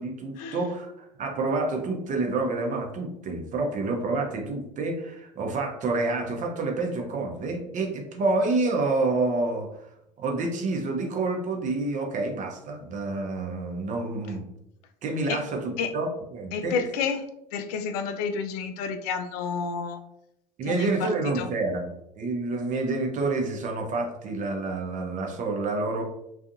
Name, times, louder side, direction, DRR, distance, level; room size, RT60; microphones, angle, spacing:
voice 1, 0.0-9.7 10.2-14.4 15.0-16.7 20.6-26.0, right 3 dB, 35° right, 2 dB, 0.7 m, -28 dB
voice 2, 16.5-17.2 17.5-20.0 20.6-21.5, left 5 dB, 65° left, 7 dB, 0.4 m, -30 dB
2.6 x 2.4 x 2.5 m, 0.80 s
hypercardioid pair, 75°, 21 cm